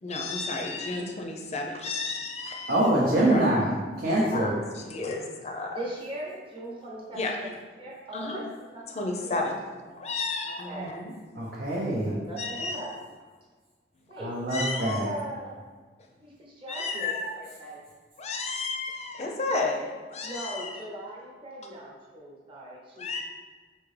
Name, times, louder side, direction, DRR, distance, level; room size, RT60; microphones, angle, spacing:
voice 1, 0.0-2.9 3.3-3.5 4.1-4.5 4.9-5.8 7.1-7.5 8.1-8.4 8.9-9.6 10.0-11.1 12.4-12.8 14.5-15.0 16.7-17.4 18.2-19.8 20.1-20.8 23.0-23.2, left 3 dB, 40° left, 2 dB, 0.5 m, -32 dB
voice 2, 2.7-4.6 11.4-12.2 14.2-15.2, right 1 dB, 60° right, -5 dB, 0.7 m, -25 dB
voice 3, 4.3-5.2 5.6-7.5 7.8-8.4 8.7-9.4 10.6-10.9 11.7-12.9 14.1-14.3 14.7-15.5 16.2-17.8 19.7-19.9 20.2-23.2, right 1 dB, 30° right, -4 dB, 1.0 m, -39 dB
5.0 x 2.7 x 3.2 m, 1.4 s
head